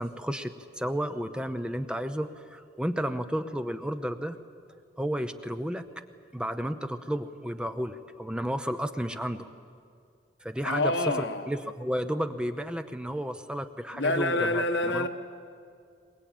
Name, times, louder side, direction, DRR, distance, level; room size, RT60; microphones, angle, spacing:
voice 1, 0.0-4.4 5.0-5.9 6.3-9.5 10.4-10.9 11.5-14.6 14.9-15.1, equal, 5° right, 9 dB, 0.7 m, -32 dB
voice 2, 10.6-11.5 13.9-15.1, left 2 dB, 70° left, 7 dB, 1.4 m, -27 dB
22.5 x 21.0 x 9.1 m, 2.3 s
head